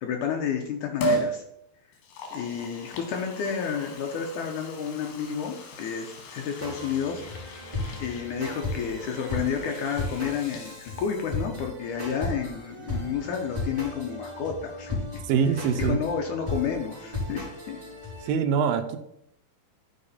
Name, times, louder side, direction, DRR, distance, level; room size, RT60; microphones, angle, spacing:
voice 1, 0.0-1.4 2.3-7.2 8.0-15.0 15.8-17.8, left 7 dB, 75° left, 3 dB, 2.1 m, -31 dB
Liquid, 1.0-1.4 1.9-11.6 11.9-12.0, right 2 dB, 90° left, 3.4 m, -36 dB
sound 1, 6.6-18.3, left 2 dB, 10° right, 3.4 m, -35 dB
voice 2, 15.3-16.0 18.2-19.0, right 7 dB, 80° right, 8 dB, 2.6 m, -24 dB
12.0 x 5.1 x 4.2 m, 0.77 s
omnidirectional pair, 4.2 m